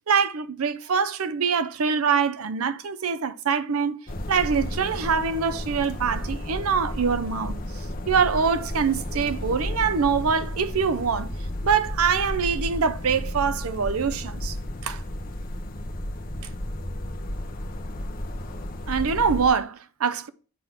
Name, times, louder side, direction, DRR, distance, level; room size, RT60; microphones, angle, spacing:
voice 1, 0.0-4.0 4.3-7.6 8.1-11.3 11.6-14.6 14.8-15.0 18.9-20.3, right 6 dB, 80° right, 0.6 m, -24 dB
sound 1, 4.1-19.5, left 1 dB, 40° left, 1.0 m, -33 dB
8.4 x 3.7 x 5.9 m
head